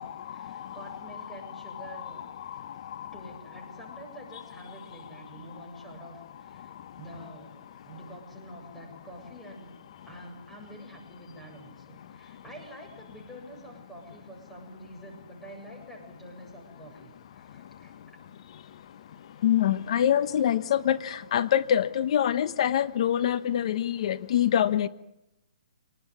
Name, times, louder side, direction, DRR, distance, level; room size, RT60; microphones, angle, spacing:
voice 1, 0.0-2.3 3.1-9.7 10.1-18.2, right 1 dB, 5° left, 0 dB, 7.8 m, -47 dB
voice 2, 1.7-2.1 2.5-2.6 19.4-24.9, left 10 dB, 45° left, 13 dB, 1.2 m, -25 dB
27.0 x 19.5 x 9.4 m, 0.87 s
hypercardioid pair, 145°, 4 cm